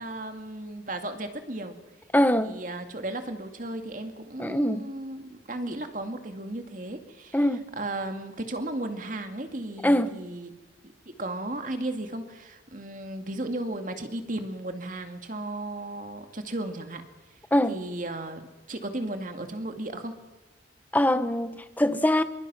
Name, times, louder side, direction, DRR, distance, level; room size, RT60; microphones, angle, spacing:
voice 1, 0.0-1.8 2.4-7.4 7.8-10.5 11.1-17.0 17.7-20.2, right 1 dB, 45° right, 2.2 m, -35 dB
voice 2, 2.1-2.5 4.4-4.9 7.3-7.7 9.8-10.1 17.5-17.8 20.9-22.2, left 1 dB, 10° left, 0.9 m, -23 dB
26.5 x 23.5 x 6.1 m
head